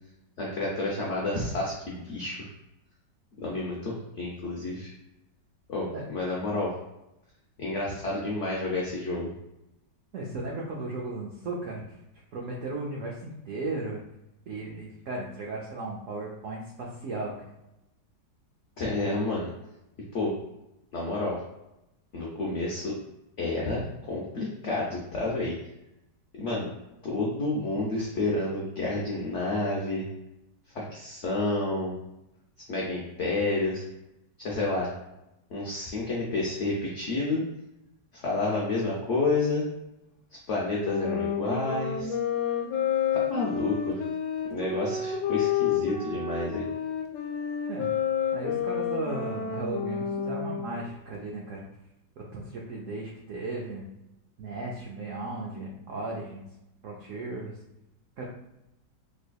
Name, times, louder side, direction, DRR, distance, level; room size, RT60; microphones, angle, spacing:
voice 1, 0.4-2.5 3.4-4.9 5.7-6.7 7.6-9.3 18.8-19.5 20.1-20.3 20.9-21.4 22.1-22.9 23.4-25.5 26.3-26.7 27.0-30.1 30.7-31.9 32.7-33.8 34.4-34.9 35.5-37.4 38.1-39.6 40.5-42.1 43.1-44.0 44.5-46.7, left 2 dB, 65° left, -3 dB, 0.7 m, -30 dB
voice 2, 10.1-12.0 12.3-14.0 14.5-17.3 47.7-47.9 48.3-51.7 52.2-53.8 54.4-56.5 56.8-57.6 58.2-58.3, right 2 dB, 70° right, -2 dB, 0.7 m, -36 dB
sound 1, 40.8-50.8, left 7 dB, 85° left, 1.3 m, -30 dB
3.4 x 3.2 x 2.3 m, 0.90 s
omnidirectional pair, 1.9 m